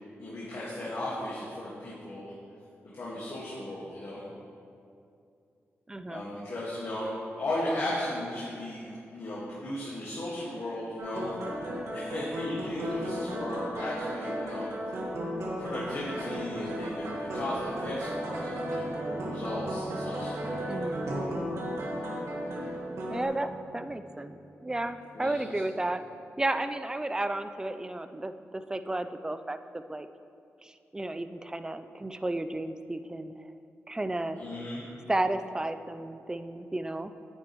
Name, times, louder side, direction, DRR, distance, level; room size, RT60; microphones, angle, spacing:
voice 1, 0.2-2.3 2.8-4.2 6.0-7.1 7.4-8.8 9.1-11.3 11.9-14.7 15.6-20.3 25.1-25.4 34.3-34.9, left 1 dB, 65° left, -8 dB, 1.8 m, -36 dB
voice 2, 5.9-6.3 20.7-21.2 23.1-26.0 26.4-30.1 30.6-33.5 33.9-34.5 35.1-37.1, right 2 dB, 15° right, 10 dB, 0.4 m, -33 dB
sound 1, 11.0-23.2, equal, 85° right, 1.6 m, -35 dB
Singing / Musical instrument, 16.7-25.7, right 2 dB, 60° right, 0.8 m, -45 dB
9.7 x 8.5 x 3.1 m, 2.5 s
cardioid pair, 75°, 5 cm